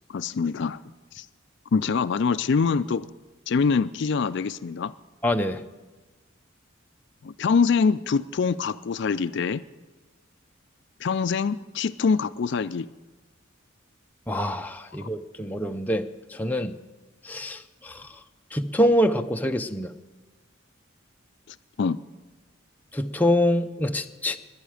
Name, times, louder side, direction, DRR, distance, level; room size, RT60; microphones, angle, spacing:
voice 1, 0.1-0.8 1.1-1.3 1.7-3.1 3.5-4.9 7.2-9.6 11.0-12.9 15.0-15.1 21.5-22.0, left 5 dB, 60° left, 14 dB, 0.4 m, -24 dB
voice 2, 5.2-5.6 14.3-16.8 17.2-18.1 18.5-19.9 22.9-24.4, equal, 10° left, 5 dB, 0.6 m, -25 dB
18.0 x 11.5 x 4.9 m, 1.3 s
head